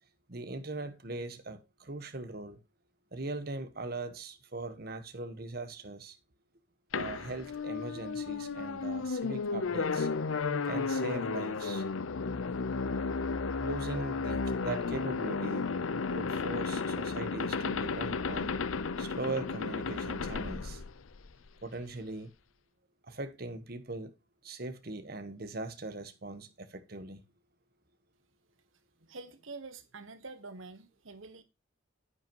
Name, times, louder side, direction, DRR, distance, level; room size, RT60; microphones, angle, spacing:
voice 1, 0.3-2.6 3.1-6.2 6.9-10.1 10.6-11.8 13.6-15.7 16.1-18.6 19.0-20.8 21.6-22.3 23.1-24.1 24.4-27.2, right 2 dB, 50° right, 1.2 m, -40 dB
sound 1, 6.9-21.5, left 4 dB, 85° left, 0.6 m, -33 dB
voice 2, 29.0-31.4, right 3 dB, 80° right, 1.3 m, -46 dB
9.8 x 8.1 x 2.9 m
head